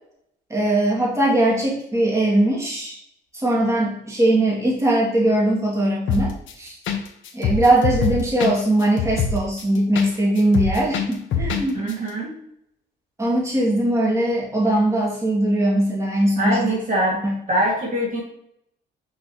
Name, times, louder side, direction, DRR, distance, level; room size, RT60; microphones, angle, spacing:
voice 1, 0.5-3.0 3.3-6.7 7.3-11.8 13.2-16.8 17.2-17.3, right 1 dB, 15° right, -5 dB, 2.2 m, -20 dB
sound 1, 6.1-6.5 6.9-7.0 7.3-10.1 10.4-11.6 11.9-12.0, left 6 dB, 75° left, 1.0 m, -23 dB
voice 2, 11.7-12.4 16.4-18.2, right 1 dB, 40° right, -3 dB, 2.0 m, -23 dB
6.0 x 5.3 x 2.9 m, 0.73 s
cardioid pair, 90°, 20 cm